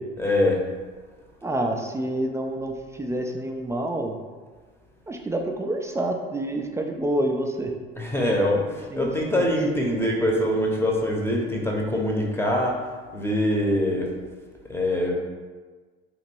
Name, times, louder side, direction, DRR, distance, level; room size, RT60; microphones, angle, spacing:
voice 1, 0.2-0.6 8.0-12.8 13.1-14.1 14.7-15.1, left 1 dB, 5° left, -1 dB, 0.8 m, -23 dB
voice 2, 1.4-4.2 5.1-7.7 8.9-9.6, right 1 dB, 10° right, 2 dB, 0.3 m, -28 dB
3.0 x 2.8 x 4.4 m, 1.4 s
figure-of-eight pair, 60°, 31 cm